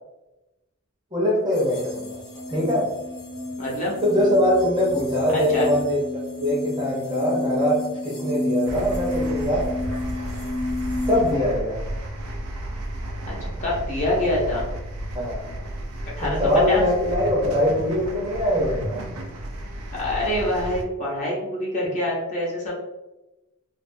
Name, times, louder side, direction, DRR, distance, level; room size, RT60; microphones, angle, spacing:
voice 1, 1.1-2.2 2.5-2.9 4.0-6.0 6.4-9.7 11.1-11.8 15.1-15.5 16.2-19.0, equal, 20° right, -5 dB, 0.6 m, -22 dB
sound 1, 1.6-11.3, left 2 dB, 70° left, 0.9 m, -30 dB
voice 2, 3.6-3.9 5.5-5.7 13.4-14.7 16.2-16.4 16.7-16.8 20.0-22.7, left 1 dB, 35° left, -5 dB, 0.7 m, -25 dB
sound 2, 8.7-20.8, right 1 dB, 80° right, 0.4 m, -33 dB
2.4 x 2.3 x 2.5 m, 1.0 s
head